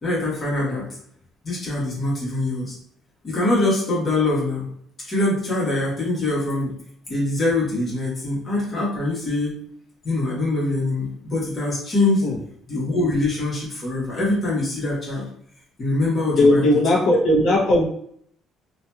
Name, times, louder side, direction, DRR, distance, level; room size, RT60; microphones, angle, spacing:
voice 1, 0.0-0.8 1.4-2.7 3.2-4.6 5.1-6.7 7.1-9.6 10.0-12.3 12.7-15.3 15.8-16.6, left 2 dB, 30° left, -6 dB, 1.1 m, -23 dB
voice 2, 16.4-17.8, left 1 dB, 65° left, -3 dB, 0.7 m, -17 dB
2.8 x 2.5 x 2.2 m, 0.66 s
cardioid pair, 140°, 0 cm